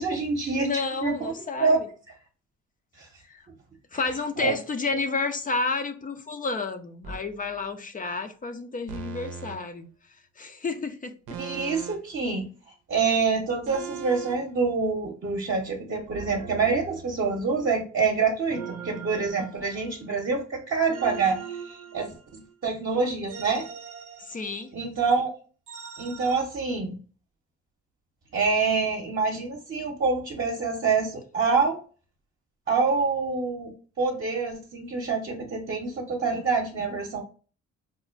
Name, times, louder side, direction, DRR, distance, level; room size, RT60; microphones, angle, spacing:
voice 1, 0.0-0.7 1.0-1.3 1.6-1.8 3.0-3.1 4.4-4.5 11.4-12.5 12.9-21.4 21.6-23.7 24.7-25.3 26.0-26.9 28.3-31.8 32.7-37.2, right 4 dB, 40° right, 0.8 m, -26 dB
voice 2, 0.5-1.9 3.3-3.4 3.9-9.9 10.4-11.4 19.4-19.5 24.3-24.7, left 3 dB, 30° left, 0.5 m, -30 dB
sound 1, 7.0-7.3 8.9-9.6 11.3-12.2 13.7-14.4 16.1-17.5 18.5-20.1 20.9-22.5 23.3-24.8 25.7-26.4, right 7 dB, 85° right, 0.6 m, -40 dB
4.9 x 2.1 x 2.4 m
cardioid pair, 90°, 30 cm